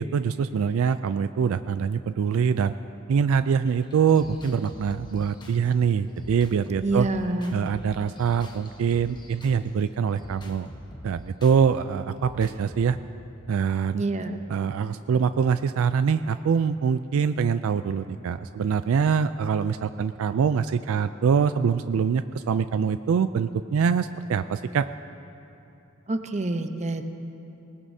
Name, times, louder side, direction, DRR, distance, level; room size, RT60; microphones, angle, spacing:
voice 1, 0.0-2.7 3.1-7.1 7.5-10.7 11.0-13.0 13.5-14.0 14.5-24.9, right 6 dB, 70° right, 12 dB, 0.3 m, -24 dB
sound 1, 3.7-9.7 10.2-11.6 12.2-13.0, equal, 20° left, 1.1 m, -44 dB
voice 2, 6.8-7.6 13.9-14.4 26.1-27.0, right 2 dB, 35° right, 8 dB, 0.7 m, -27 dB
20.0 x 19.5 x 2.7 m, 2.9 s
head